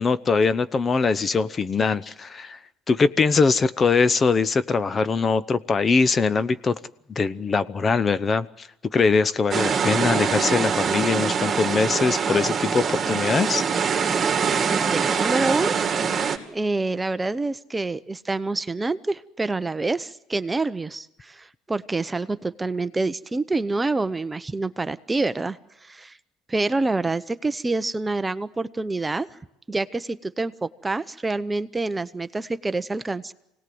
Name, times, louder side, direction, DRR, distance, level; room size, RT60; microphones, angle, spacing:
voice 1, 0.0-2.6 2.9-6.8 7.1-13.6, left 4 dB, 30° left, 15 dB, 0.9 m, -22 dB
sound 1, 9.5-16.4, right 6 dB, 30° right, 2.6 m, -24 dB
voice 2, 14.7-15.8 16.2-26.2 26.5-29.4 29.7-33.3, right 3 dB, 15° right, 13 dB, 0.8 m, -27 dB
25.5 x 18.5 x 7.8 m, 0.86 s
supercardioid pair, 95°, 0 cm